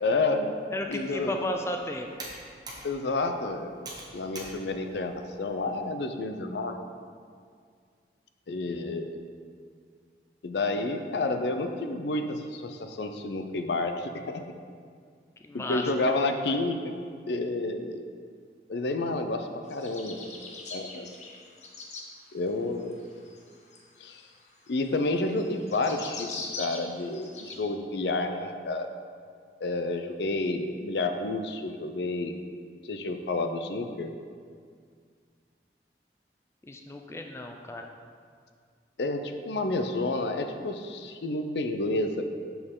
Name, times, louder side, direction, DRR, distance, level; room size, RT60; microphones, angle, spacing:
voice 1, 0.0-0.6 0.9-1.4 2.8-3.7 4.1-6.8 8.5-9.2 10.4-14.5 15.5-16.9 17.3-18.0 18.7-20.3 20.7-21.1 22.3-22.9 24.0-24.2 24.7-28.9 29.6-32.4 32.9-34.1 39.0-42.2, left 2 dB, 75° left, 6 dB, 0.5 m, -30 dB
voice 2, 0.7-2.1 15.4-15.8 36.7-37.9, left 1 dB, 15° left, 3 dB, 0.3 m, -34 dB
Computer keyboard, 0.7-5.9, right 2 dB, 25° right, 1.1 m, -47 dB
sound 1, 19.7-22.1 22.8-27.6, left 3 dB, 40° left, 0.8 m, -41 dB
6.8 x 6.4 x 3.7 m, 2.1 s
head